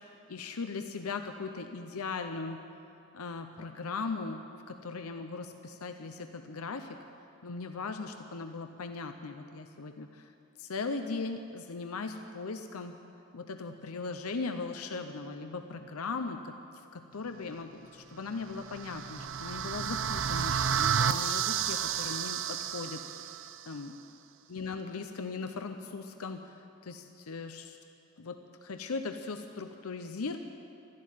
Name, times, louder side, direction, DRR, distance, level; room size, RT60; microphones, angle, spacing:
voice 1, 0.3-2.6 3.1-7.0 7.4-10.3 10.6-13.0 13.3-16.5 16.9-23.3 23.7-23.9 24.5-27.8 28.2-30.4, left 4 dB, 85° left, 7 dB, 0.7 m, -38 dB
sound 1, 18.5-23.6, right 7 dB, 60° right, 0.6 m, -31 dB
13.0 x 11.5 x 9.3 m, 2.8 s
head